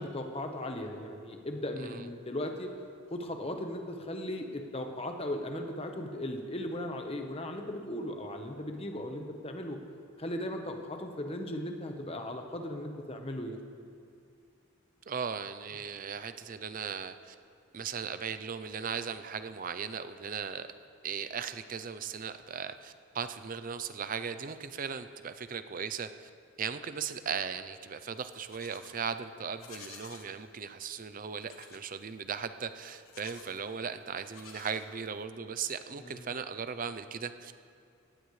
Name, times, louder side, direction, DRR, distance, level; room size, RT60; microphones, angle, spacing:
voice 1, 0.0-2.7 3.1-9.8 10.2-13.6 36.0-36.3, left 1 dB, 30° left, 4 dB, 1.1 m, -37 dB
voice 2, 15.1-17.4 17.7-20.7 21.0-26.3 26.6-37.5, right 6 dB, 40° right, 11 dB, 0.5 m, -37 dB
Livestock farm animals working animals, 28.2-29.0 29.5-30.3 31.4-31.9 33.0-33.6 34.2-35.2, left 6 dB, 85° left, 1.3 m, -52 dB
18.0 x 15.0 x 3.2 m, 2.4 s
head